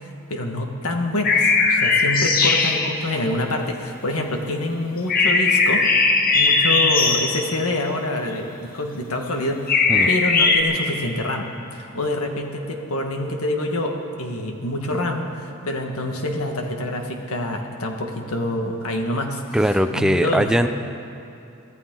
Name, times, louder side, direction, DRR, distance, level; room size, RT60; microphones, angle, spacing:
voice 1, 0.0-5.9 6.3-20.7, left 1 dB, 75° left, 3 dB, 1.7 m, -26 dB
sound 1, 1.2-2.9 5.1-7.5 9.7-10.6, left 4 dB, 40° left, 1.2 m, -18 dB
voice 2, 19.5-20.7, equal, 5° right, 7 dB, 0.5 m, -19 dB
24.0 x 14.5 x 3.9 m, 2.7 s
head